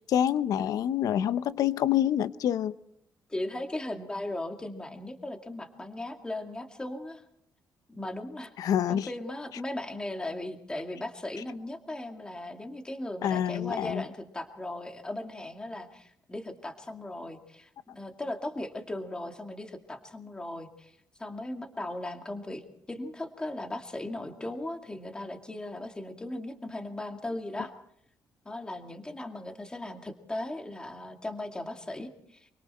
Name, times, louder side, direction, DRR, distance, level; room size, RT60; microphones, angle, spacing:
voice 1, 0.0-2.7 8.6-9.1 13.2-14.0, left 10 dB, 70° left, 14 dB, 0.9 m, -27 dB
voice 2, 3.3-7.2 7.9-8.5 8.9-20.9 21.2-22.6 22.9-27.7 28.5-32.5, left 1 dB, 15° left, 4 dB, 2.3 m, -37 dB
26.0 x 24.0 x 4.4 m, 0.68 s
cardioid pair, 155°, 6 cm